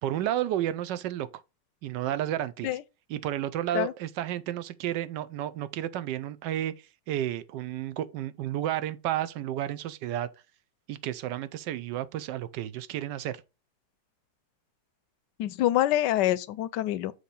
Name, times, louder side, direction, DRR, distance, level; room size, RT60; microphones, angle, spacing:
voice 1, 0.0-1.3 1.8-2.8 3.1-6.7 7.1-10.3 10.9-13.4, right 12 dB, 75° right, 1.2 m, -31 dB
voice 2, 15.4-17.1, left 13 dB, 75° left, 1.1 m, -26 dB
6.6 x 3.1 x 5.3 m
omnidirectional pair, 2.0 m